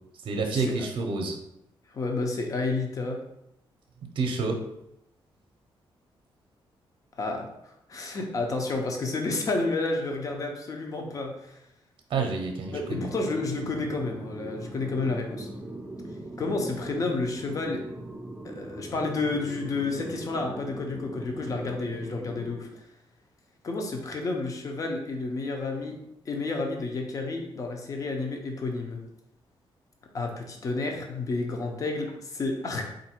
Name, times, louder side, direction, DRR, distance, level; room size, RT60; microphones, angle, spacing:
voice 1, 0.2-1.4 4.2-4.6 12.1-13.1, right 4 dB, 60° right, 3 dB, 0.6 m, -28 dB
voice 2, 1.9-3.2 7.2-7.5 7.9-11.6 12.7-15.5 16.4-17.8 18.4-22.7 23.6-26.0 26.3-29.0 30.1-32.9, left 3 dB, 35° left, 2 dB, 0.7 m, -30 dB
sound 1, 12.6-22.5, right 1 dB, 10° right, 0.5 m, -40 dB
3.9 x 2.6 x 4.4 m, 0.80 s
wide cardioid pair, 155°, 9 cm